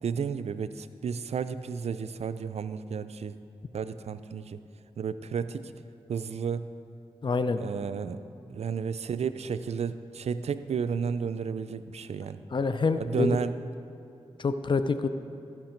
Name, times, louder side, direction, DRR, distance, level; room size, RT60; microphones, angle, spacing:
voice 1, 0.0-3.3 3.7-4.6 5.0-5.7 6.1-6.7 7.6-8.2 8.5-12.4 13.0-13.5, right 6 dB, 70° right, 13 dB, 0.4 m, -32 dB
voice 2, 7.2-7.6 12.5-13.4 14.4-15.1, left 4 dB, 45° left, 10 dB, 0.5 m, -26 dB
13.0 x 5.9 x 4.4 m, 2.6 s
cardioid pair, 40°, 11 cm